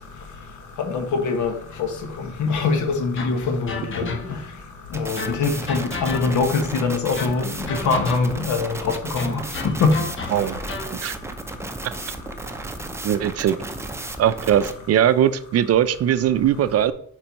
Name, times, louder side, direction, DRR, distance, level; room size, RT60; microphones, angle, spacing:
voice 1, 0.9-1.5 2.4-4.0 4.9-9.3 9.6-9.9, left 4 dB, 75° left, 1.2 m, -23 dB
sound 1, 3.2-4.6 5.2-6.6 7.2-8.5 9.2-11.0, left 4 dB, 40° left, 1.1 m, -33 dB
sound 2, 4.9-14.7, right 2 dB, 10° right, 0.6 m, -34 dB
voice 2, 13.0-13.6 14.2-16.9, right 10 dB, 55° right, 0.5 m, -20 dB
4.5 x 4.3 x 5.2 m
cardioid pair, 90°, 30 cm